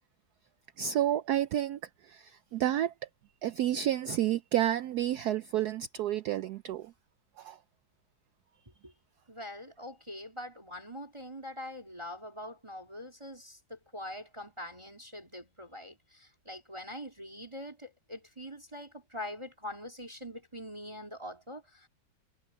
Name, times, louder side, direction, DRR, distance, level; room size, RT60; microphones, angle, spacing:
voice 1, 0.8-2.9 3.4-6.9 7.4-7.6, right 11 dB, 85° right, 0.8 m, -30 dB
voice 2, 9.3-21.9, left 1 dB, 15° right, 2.5 m, -43 dB
omnidirectional pair, 2.3 m